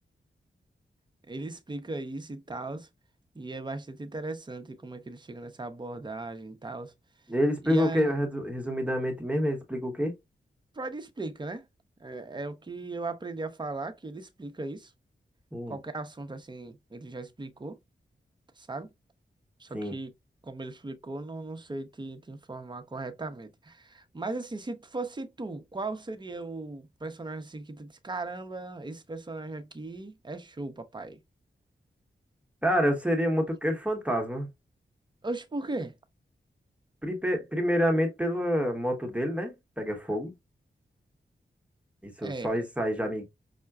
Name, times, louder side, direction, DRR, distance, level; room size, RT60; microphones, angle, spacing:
voice 1, 1.3-2.9 3.3-6.9 7.7-8.1 10.7-11.6 12.0-14.9 15.7-17.8 18.6-18.9 19.6-20.1 20.4-31.2 35.2-35.9 42.2-42.6, right 2 dB, 25° right, 0.6 m, -37 dB
voice 2, 7.3-10.1 15.5-15.8 19.7-20.0 32.6-34.5 37.0-40.3 42.0-43.2, equal, 5° right, 1.0 m, -28 dB
5.6 x 2.1 x 2.3 m
wide cardioid pair, 80°, 19 cm